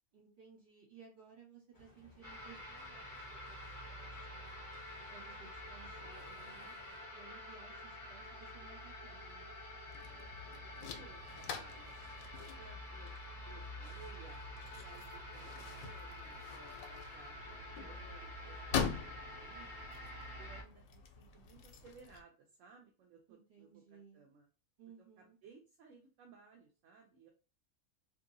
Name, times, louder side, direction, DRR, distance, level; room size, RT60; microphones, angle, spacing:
voice 1, 0.1-4.5 5.1-6.7 7.1-9.5 23.3-24.2 24.8-25.4, right 6 dB, 50° right, -3 dB, 1.5 m, -60 dB
sound 1, 1.7-7.0, equal, 15° left, 0.9 m, -62 dB
sound 2, 2.2-20.6, left 1 dB, 25° right, 1.0 m, -48 dB
sound 3, 9.9-22.2, left 6 dB, 80° left, 1.0 m, -44 dB
voice 2, 9.9-10.5 10.8-11.9 12.3-13.2 13.4-14.5 14.7-19.7 20.4-24.5 25.0-27.3, right 5 dB, 75° right, 1 dB, 0.9 m, -60 dB
2.7 x 2.6 x 2.6 m, 0.34 s
omnidirectional pair, 1.4 m